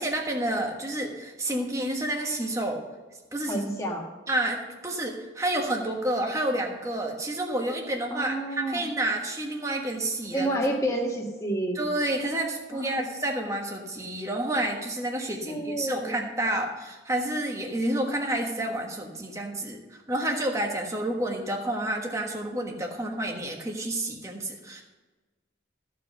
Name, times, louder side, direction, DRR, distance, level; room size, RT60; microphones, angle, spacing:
voice 1, 0.0-2.8 3.3-3.6 4.3-10.6 11.7-24.8, right 1 dB, 15° right, 1 dB, 1.3 m, -29 dB
voice 2, 3.4-4.1 8.1-8.8 10.3-11.8 12.7-13.1 15.5-16.2, right 1 dB, 15° left, 0 dB, 1.6 m, -29 dB
14.0 x 5.1 x 6.7 m, 1.2 s
head